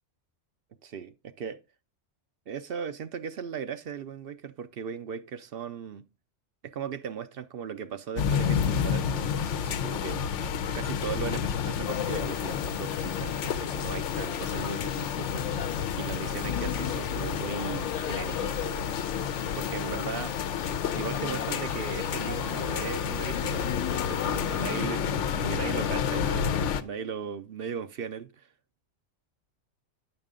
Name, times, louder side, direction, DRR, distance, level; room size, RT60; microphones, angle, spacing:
voice 1, 0.8-1.6 2.5-6.0 6.6-10.3 10.7-15.6 16.0-18.9 19.5-20.4 20.9-28.5, right 7 dB, 60° right, 0.7 m, -38 dB
sound 1, 8.2-26.8, left 7 dB, 90° left, 1.0 m, -30 dB
sound 2, 11.8-24.8, left 9 dB, 50° left, 0.5 m, -39 dB
8.8 x 6.4 x 3.6 m
omnidirectional pair, 1.2 m